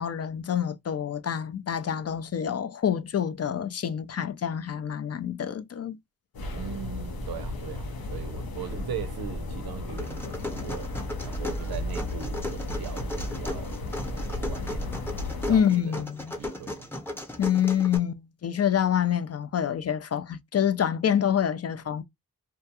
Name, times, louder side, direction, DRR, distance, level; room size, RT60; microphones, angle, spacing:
voice 1, 0.0-6.0 15.5-16.4 17.4-22.0, left 9 dB, 45° left, 0.4 m, -27 dB
sound 1, 6.3-15.6, left 2 dB, 80° left, 0.7 m, -34 dB
voice 2, 6.5-10.9 11.2-13.8 14.1-15.0 15.5-16.0 16.4-16.9, right 9 dB, 90° right, 0.6 m, -40 dB
sound 2, 10.0-18.0, left 1 dB, 5° left, 0.7 m, -36 dB
2.3 x 2.2 x 2.7 m
cardioid pair, 55°, 36 cm